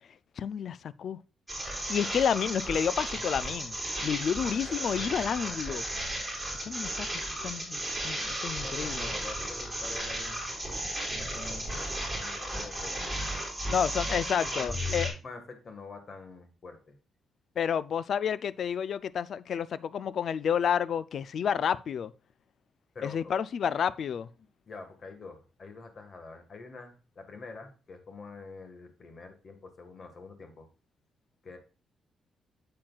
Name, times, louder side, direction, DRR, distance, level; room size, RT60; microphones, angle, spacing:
voice 1, 0.4-1.2 1.9-3.8 4.0-5.8 6.6-9.1 13.7-15.1 17.6-22.1 23.0-24.3, left 8 dB, 55° left, 0.3 m, -30 dB
sound 1, 1.5-15.1, right 1 dB, ahead, 4.1 m, -34 dB
voice 2, 8.6-10.5 11.1-13.2 14.0-14.2 14.5-16.9 22.9-23.3 24.4-30.7 31.4-31.6, left 3 dB, 35° left, 1.5 m, -46 dB
8.6 x 7.6 x 2.3 m
cardioid pair, 155°, 0 cm